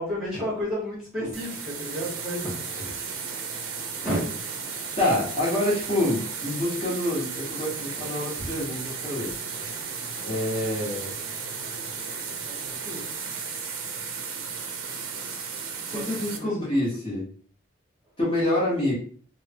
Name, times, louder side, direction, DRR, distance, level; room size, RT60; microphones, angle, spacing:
voice 1, 0.0-2.5 3.2-3.4 4.0-4.6 12.4-13.0 15.9-16.5, equal, 5° right, -7 dB, 1.1 m, -32 dB
sound 1, 1.3-16.4, right 5 dB, 80° right, 0.6 m, -34 dB
voice 2, 5.0-9.7 10.2-11.2 15.8-17.3 18.2-18.9, left 1 dB, 25° left, -6 dB, 1.2 m, -27 dB
3.2 x 2.1 x 2.8 m, 0.44 s
head